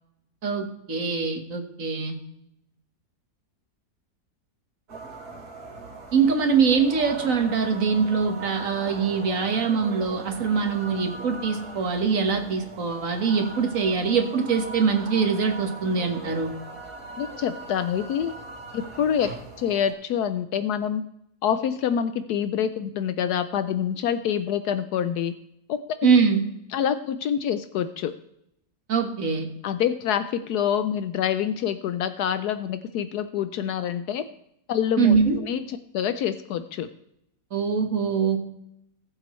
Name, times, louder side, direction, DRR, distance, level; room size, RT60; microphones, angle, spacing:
voice 1, 0.4-2.2 6.1-16.5 26.0-26.4 28.9-29.5 35.0-35.4 37.5-38.4, right 5 dB, 55° right, 5 dB, 1.8 m, -23 dB
sound 1, 4.9-19.9, right 3 dB, 70° right, 2.5 m, -40 dB
voice 2, 17.2-18.3 18.7-19.3 19.6-21.0 21.4-25.3 25.7-26.1 26.7-28.1 29.6-34.3 34.7-35.2 35.4-36.9, left 9 dB, 75° left, 11 dB, 1.1 m, -26 dB
19.0 x 7.5 x 3.1 m, 0.79 s
omnidirectional pair, 1.7 m